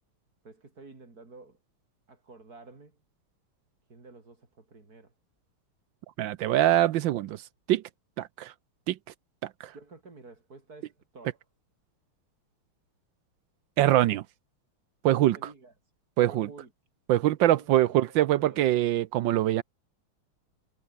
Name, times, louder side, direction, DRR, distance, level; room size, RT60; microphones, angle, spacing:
voice 1, 0.4-1.6 2.1-3.0 3.9-5.1 9.7-11.4 15.2-15.7 16.3-16.7 17.5-18.9, right 3 dB, 45° right, 4.5 m, -51 dB
voice 2, 6.2-7.4 7.7-7.8 8.2-8.5 8.9-9.0 9.6-9.7 13.8-14.2 15.0-15.4 16.2-16.5 17.1-19.6, right 13 dB, 70° right, 1.2 m, -23 dB
omnidirectional pair, 2.4 m